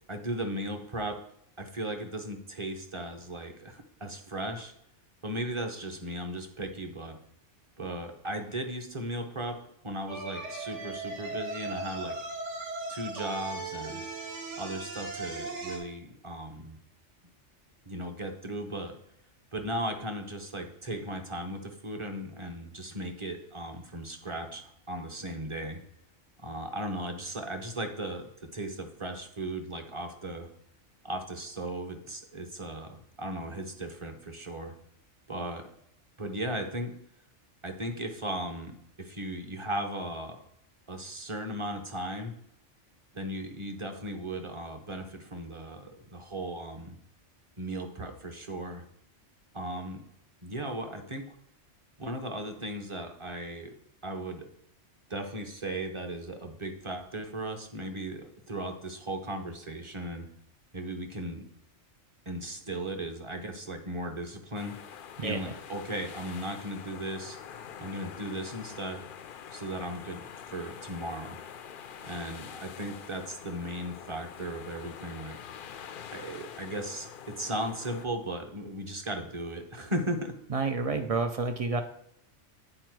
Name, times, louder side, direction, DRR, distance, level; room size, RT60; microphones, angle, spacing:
voice 1, 0.1-1.2 1.6-4.7 5.2-7.2 7.8-9.6 9.8-12.2 12.9-14.0 14.6-16.8 17.9-19.0 19.5-25.8 26.4-30.5 31.0-34.8 35.3-35.7 36.2-36.9 37.6-40.4 40.9-42.3 43.1-47.0 47.6-48.8 49.5-50.0 50.4-51.4 52.0-53.7 54.0-54.5 55.1-60.3 60.7-61.4 62.3-64.8 65.2-67.4 67.8-69.0 69.5-71.4 72.0-75.4 76.1-80.3, right 1 dB, 30° right, 5 dB, 0.8 m, -36 dB
sound 1, 10.1-15.8, right 3 dB, 75° right, 1.8 m, -38 dB
sound 2, 64.5-78.1, left 8 dB, 60° left, 0.6 m, -45 dB
voice 2, 80.5-81.8, right 4 dB, 55° right, 7 dB, 0.4 m, -29 dB
8.9 x 4.5 x 4.6 m, 0.72 s
omnidirectional pair, 1.2 m